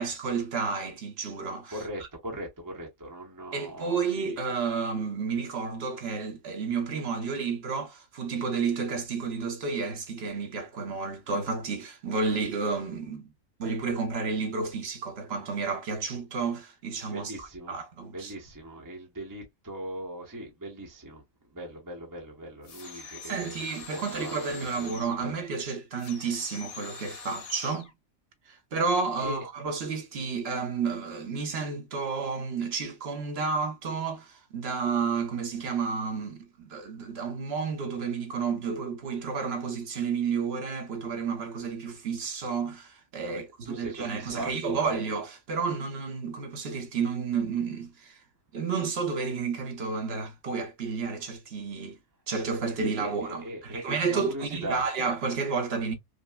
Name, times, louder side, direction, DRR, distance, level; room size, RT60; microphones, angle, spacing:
voice 1, 0.0-1.8 3.5-13.3 13.6-18.3 22.9-27.9 28.5-48.2 48.5-52.0 52.3-55.9, right 5 dB, 50° right, 1.0 m, -31 dB
voice 2, 1.7-4.4 17.1-17.7 18.1-21.2 21.5-25.3 29.2-29.4 43.3-45.0 52.8-54.9, right 1 dB, 15° right, 0.8 m, -40 dB
sound 1, 22.6-25.2 26.0-27.9, left 5 dB, 85° left, 1.5 m, -44 dB
5.2 x 2.1 x 2.2 m
omnidirectional pair, 1.4 m